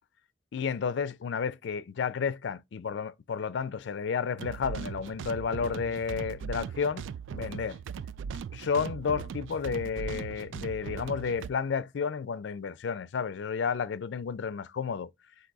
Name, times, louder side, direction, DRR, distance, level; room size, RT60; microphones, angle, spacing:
voice 1, 0.5-7.0 7.3-7.8 8.5-15.1, left 6 dB, 70° left, 0.4 m, -31 dB
sound 1, 4.4-11.5, right 7 dB, 85° right, 0.3 m, -39 dB
4.6 x 2.6 x 3.9 m
head